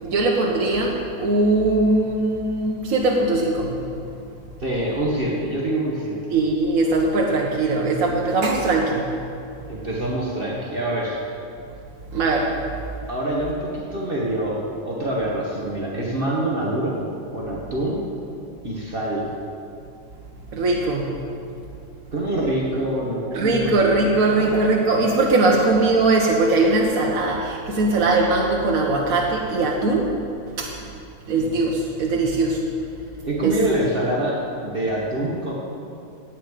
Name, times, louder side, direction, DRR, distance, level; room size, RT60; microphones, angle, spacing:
voice 1, 0.0-3.8 6.3-9.1 12.1-12.5 20.5-21.1 23.3-30.1 30.6-30.7 31.3-32.6 33.4-33.6, right 2 dB, 75° right, -1 dB, 1.6 m, -20 dB
voice 2, 4.6-6.2 9.7-11.2 13.1-17.0 17.3-18.0 18.6-19.3 22.1-23.7 24.3-24.6 25.5-25.6 31.3-31.5 33.2-35.5, right 1 dB, 40° right, -5 dB, 1.9 m, -25 dB
17.0 x 9.4 x 5.0 m, 2.5 s
omnidirectional pair, 1.5 m